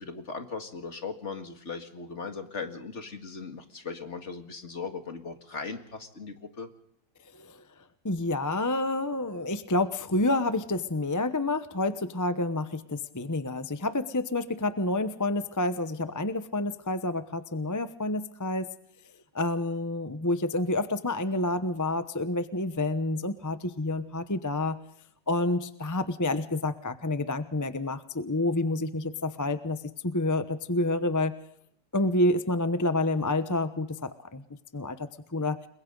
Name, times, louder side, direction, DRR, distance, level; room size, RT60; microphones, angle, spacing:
voice 1, 0.0-6.7, left 4 dB, 40° left, 6 dB, 2.2 m, -38 dB
voice 2, 8.0-18.7 19.3-24.8 25.3-31.3 31.9-34.4 34.7-35.6, left 2 dB, 20° left, 11 dB, 0.5 m, -28 dB
30.0 x 22.0 x 3.9 m, 0.70 s
omnidirectional pair, 1.9 m